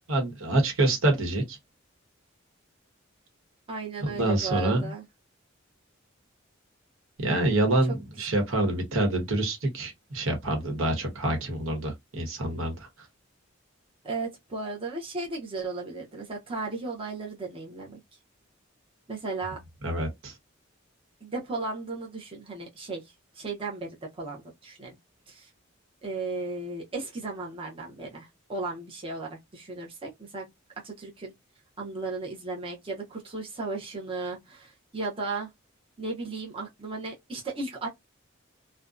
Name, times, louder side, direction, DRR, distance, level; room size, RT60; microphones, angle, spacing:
voice 1, 0.1-1.6 4.0-4.9 7.2-12.9 19.8-20.3, right 2 dB, 85° right, 1.1 m, -26 dB
voice 2, 3.7-5.0 14.0-18.0 19.1-19.6 21.2-23.0 23.3-25.0 25.3-25.5 26.0-30.5 30.8-31.3 31.8-35.5 36.0-37.9, right 3 dB, 25° right, 0.7 m, -35 dB
2.6 x 2.2 x 2.4 m
head